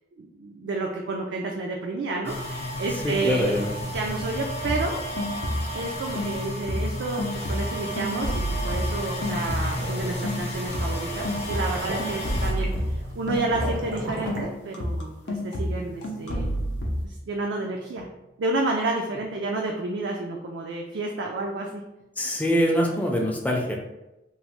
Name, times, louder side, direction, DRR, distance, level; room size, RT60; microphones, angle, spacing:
voice 1, 0.2-3.5 3.9-5.0 5.7-16.6 17.0-18.1 18.4-21.8, right 3 dB, 70° right, 0 dB, 0.3 m, -30 dB
sound 1, 2.2-15.0 15.3-17.7, equal, 40° left, 0.7 m, -34 dB
voice 2, 3.0-3.7 22.2-23.8, equal, 10° left, 0 dB, 0.4 m, -24 dB
sound 2, 4.6-5.9 6.1-9.9 10.2-14.0 14.3-17.0, equal, 85° left, 0.5 m, -30 dB
sound 3, 9.2-14.5, equal, 90° right, 0.7 m, -37 dB
3.0 x 2.1 x 2.9 m, 0.97 s
head